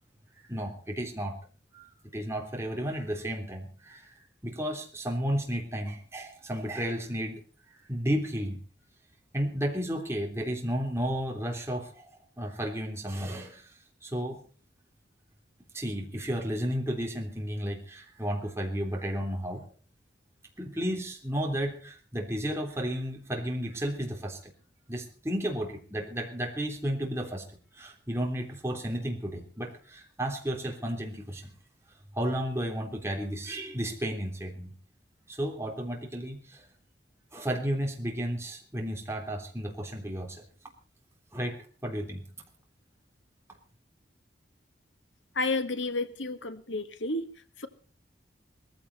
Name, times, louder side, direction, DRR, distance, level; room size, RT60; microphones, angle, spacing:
voice 1, 0.5-1.4 1.7-4.2 4.4-7.4 7.9-8.6 9.3-12.1 12.4-13.7 14.0-14.4 15.7-19.7 20.6-24.5 24.9-27.4 27.7-31.5 32.1-34.7 35.3-36.6 37.3-40.4 41.3-42.2, equal, 15° right, 3.4 m, -33 dB
voice 2, 45.3-47.3 47.6-47.7, left 2 dB, 80° left, 1.7 m, -31 dB
19.5 x 15.0 x 4.2 m
head